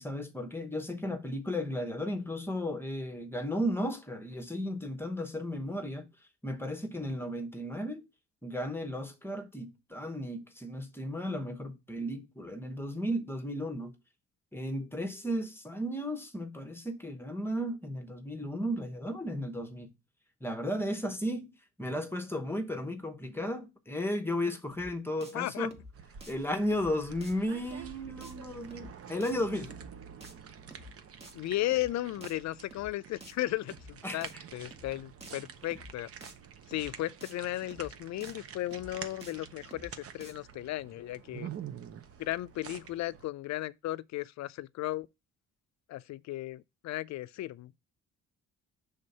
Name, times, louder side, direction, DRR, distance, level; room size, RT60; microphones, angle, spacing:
voice 1, 0.0-6.1 6.4-8.1 8.4-13.9 14.5-19.9 20.4-21.5 21.8-25.8 26.3-29.7 34.0-34.2, equal, 10° left, 0.9 m, -34 dB
sound 1, 24.7-24.9 25.2-25.3 25.6-25.9 26.2-26.3 26.7-26.9 27.2-27.3 27.6-27.9 28.2-28.3 28.7-28.9 29.2-29.3 29.6-29.9 30.2-30.3 30.7-30.9 31.2-31.3 31.6-31.9 32.2-32.3 32.7-32.9 33.2-33.3 33.6-33.9 34.2-34.3 34.7-34.9 35.2-35.3 35.6-35.9 36.2-36.3 36.7-36.9 37.2-37.3 37.6-37.9 38.2-38.3 38.7-38.9 39.2-39.3 39.6-39.9 40.2-40.3, equal, 20° right, 1.1 m, -50 dB
voice 2, 25.3-25.7 31.3-36.1 36.7-41.5 42.2-45.1 45.9-47.8, left 15 dB, 65° left, 0.4 m, -35 dB
sound 2, 25.9-43.3, right 8 dB, 50° right, 0.7 m, -48 dB
5.4 x 3.6 x 5.3 m
cardioid pair, 90°, 30 cm